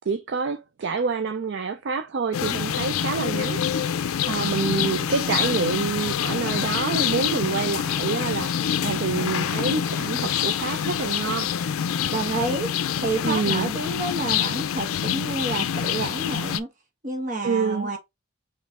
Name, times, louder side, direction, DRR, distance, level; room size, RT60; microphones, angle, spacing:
voice 1, 0.1-3.6 4.3-11.5 13.2-13.7 17.4-17.9, right 5 dB, 55° right, 0.4 m, -27 dB
sound 1, 2.3-16.6, left 8 dB, 80° left, 0.4 m, -26 dB
voice 2, 12.0-12.7 13.0-16.7 17.0-18.0, right 2 dB, 40° right, 1.1 m, -29 dB
4.1 x 3.2 x 3.6 m
head